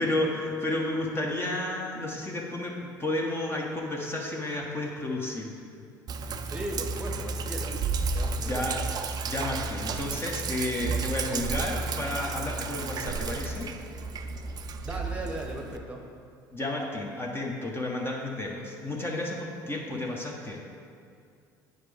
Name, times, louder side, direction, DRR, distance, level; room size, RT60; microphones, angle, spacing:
voice 1, 0.0-5.5 8.4-8.8 9.3-13.7 16.5-20.6, left 1 dB, 20° left, -1 dB, 1.1 m, -32 dB
Sink (filling or washing), 6.1-15.8, right 4 dB, 40° right, 0.5 m, -32 dB
voice 2, 6.4-7.9 8.1-8.7 14.8-16.0, right 1 dB, 10° right, 0 dB, 1.1 m, -37 dB
9.2 x 5.1 x 3.5 m, 2.4 s
hypercardioid pair, 65°, 11 cm